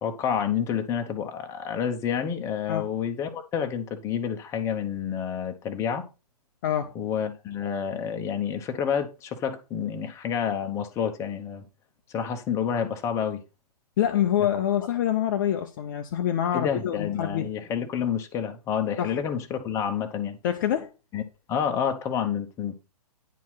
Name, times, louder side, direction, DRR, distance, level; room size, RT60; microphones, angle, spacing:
voice 1, 0.0-6.0 6.9-11.6 12.1-13.4 16.5-20.4 21.1-21.2 21.5-22.8, left 8 dB, 15° left, 1.1 m, -29 dB
voice 2, 6.6-6.9 14.0-17.5 19.0-19.1 20.4-20.9, left 10 dB, 30° left, 0.8 m, -26 dB
10.0 x 4.5 x 5.7 m
figure-of-eight pair, 130°, 20 cm